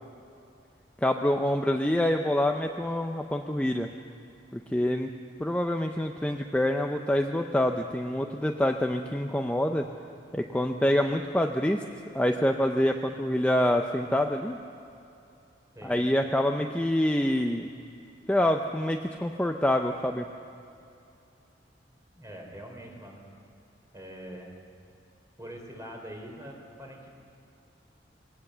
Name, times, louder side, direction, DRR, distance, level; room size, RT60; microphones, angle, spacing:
voice 1, 1.0-3.9 4.5-5.1 5.4-9.9 10.3-11.8 12.1-14.6 15.8-17.7 18.3-20.3, left 1 dB, 10° left, 3 dB, 0.6 m, -26 dB
voice 2, 22.1-23.2 23.9-24.5 25.4-27.1, equal, 20° right, 1 dB, 3.5 m, -43 dB
22.0 x 18.0 x 6.8 m, 2.7 s
head